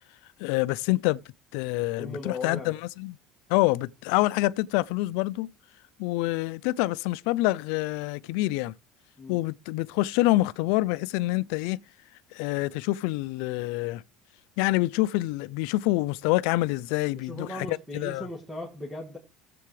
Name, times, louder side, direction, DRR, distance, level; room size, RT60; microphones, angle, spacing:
voice 1, 0.4-1.2 1.5-3.2 3.5-5.5 6.0-8.7 9.3-11.8 12.3-14.0 14.6-18.3, left 19 dB, 80° left, 0.4 m, -26 dB
voice 2, 1.8-2.8 9.2-9.4 17.1-19.2, left 2 dB, 5° left, 2.1 m, -38 dB
16.0 x 7.7 x 3.2 m
cardioid pair, 140°, 0 cm